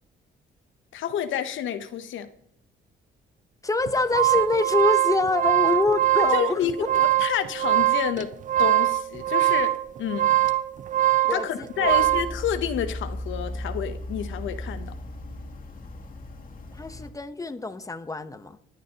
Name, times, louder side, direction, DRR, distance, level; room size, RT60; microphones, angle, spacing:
voice 1, 0.9-2.3 6.3-8.3 8.6-10.3 11.3-14.9, left 9 dB, 75° left, 10 dB, 0.8 m, -29 dB
voice 2, 3.6-6.7 11.2-12.0 16.8-18.6, left 3 dB, 15° left, 11 dB, 0.9 m, -25 dB
sound 1, 3.9-12.3, right 14 dB, 40° right, 0.4 m, -22 dB
sound 2, 11.8-17.1, left 1 dB, 45° left, 2.2 m, -36 dB
20.5 x 9.1 x 2.9 m, 0.73 s
cardioid pair, 90°, 20 cm